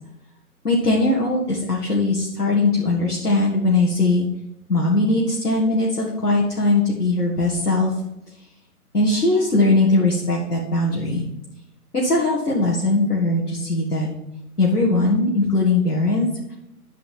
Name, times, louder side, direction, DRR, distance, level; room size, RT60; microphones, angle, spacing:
voice 1, 0.6-4.3 4.7-7.9 8.9-11.2 11.9-14.1 14.6-16.5, left 2 dB, 80° left, -4 dB, 2.2 m, -20 dB
10.5 x 5.1 x 5.8 m, 0.89 s
figure-of-eight pair, 135°, 46 cm